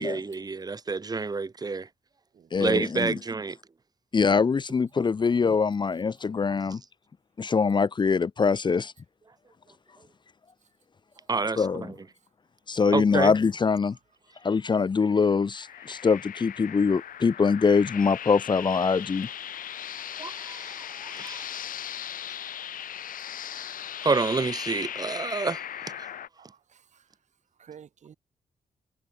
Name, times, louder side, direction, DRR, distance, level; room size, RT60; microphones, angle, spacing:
voice 1, 0.0-1.9 2.6-3.6 11.3-11.9 12.9-13.3 20.2-21.5 24.0-25.6 25.9-26.1, right 4 dB, 30° right, 3.0 m, -29 dB
voice 2, 2.5-3.2 4.1-6.8 7.4-8.9 11.6-11.9 12.7-14.0 14.4-19.3, left 5 dB, 35° left, 1.0 m, -23 dB
sound 1, 15.5-26.3, left 10 dB, 85° left, 2.5 m, -38 dB
voice 3, 26.4-27.0 27.6-28.2, right 8 dB, 60° right, 2.6 m, -51 dB
wide cardioid pair, 135°, 14 cm